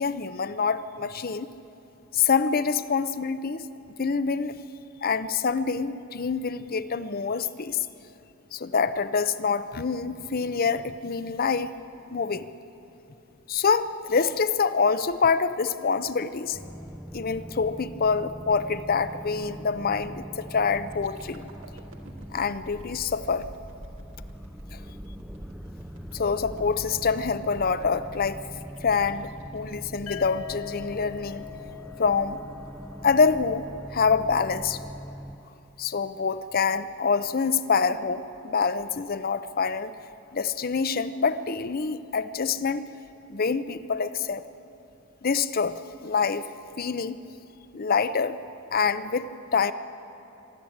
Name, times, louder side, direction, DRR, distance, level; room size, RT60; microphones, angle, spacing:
voice 1, 0.0-1.5 2.1-3.7 4.0-4.6 5.0-7.9 8.5-11.7 12.1-12.4 13.5-16.6 17.1-21.4 22.3-23.5 24.7-24.8 26.1-28.4 28.8-31.5 32.0-32.4 33.0-33.6 33.9-34.8 35.8-39.9 40.3-42.8 43.3-44.4 45.2-46.5 46.8-47.2 47.7-48.4 48.7-49.7, left 5 dB, 45° left, 13 dB, 0.6 m, -26 dB
sound 1, 16.5-35.4, equal, ahead, 0.6 m, -42 dB
sound 2, 20.9-30.7 31.2-31.4, right 1 dB, 70° right, 2.2 m, -51 dB
sound 3, 30.1-33.9, left 14 dB, 75° left, 1.0 m, -42 dB
25.0 x 12.0 x 8.7 m, 2.9 s
head